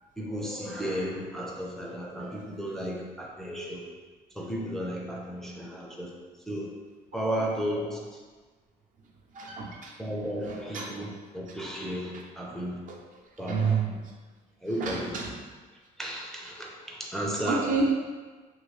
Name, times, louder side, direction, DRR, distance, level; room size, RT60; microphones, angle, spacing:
voice 1, 0.2-3.9 4.4-6.1 6.5-6.7 7.1-8.2 10.0-12.8 13.4-13.8 14.6-15.2 16.0-17.7, equal, ahead, -3 dB, 0.4 m, -34 dB
voice 2, 9.3-9.9 10.4-10.9 12.1-12.2 12.9-13.0 13.4-14.1 14.8-15.3 17.5-17.9, right 4 dB, 50° right, 0 dB, 0.5 m, -29 dB
2.8 x 2.7 x 3.1 m, 1.4 s
cardioid pair, 110°, 17 cm